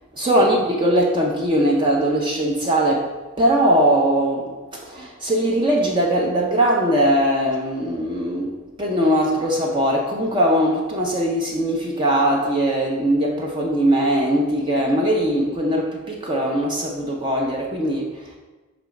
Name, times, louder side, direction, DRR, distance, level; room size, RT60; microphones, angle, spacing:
voice 1, 0.2-3.1 3.4-18.4, right 1 dB, 20° right, -1 dB, 0.5 m, -20 dB
6.0 x 3.0 x 5.7 m, 1.2 s
head